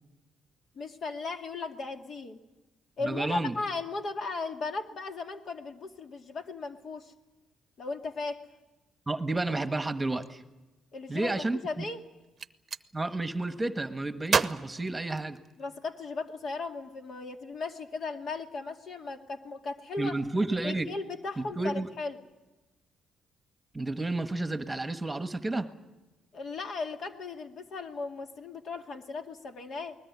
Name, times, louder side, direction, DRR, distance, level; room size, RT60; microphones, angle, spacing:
voice 1, 0.8-2.4 3.0-7.1 7.8-8.4 10.9-12.0 15.6-20.2 20.6-22.2 26.3-30.0, left 3 dB, 55° left, 6 dB, 2.2 m, -36 dB
voice 2, 3.0-3.5 9.1-10.4 11.1-11.9 12.9-15.4 20.0-20.9 21.4-21.9 23.7-25.7, right 2 dB, 15° right, 10 dB, 1.4 m, -31 dB
Gunshot gunfire, 12.2-12.9 14.3-15.7, right 6 dB, 45° right, 0.8 m, -30 dB
21.0 x 20.5 x 9.5 m, 1.1 s
cardioid pair, 90°, 0 cm